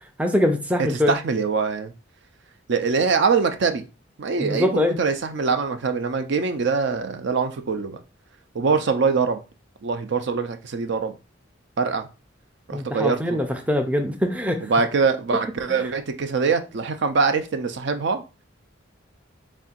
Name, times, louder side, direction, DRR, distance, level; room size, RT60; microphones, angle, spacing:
voice 1, 0.2-1.2 4.4-5.0 12.7-14.7 15.7-15.8, left 1 dB, 5° right, 0.4 m, -23 dB
voice 2, 0.9-1.9 2.7-3.8 4.2-8.0 8.5-9.4 9.8-11.1 11.8-12.1 12.7-13.4 14.6-18.2, right 5 dB, 60° right, 0.5 m, -23 dB
4.2 x 3.6 x 2.4 m
head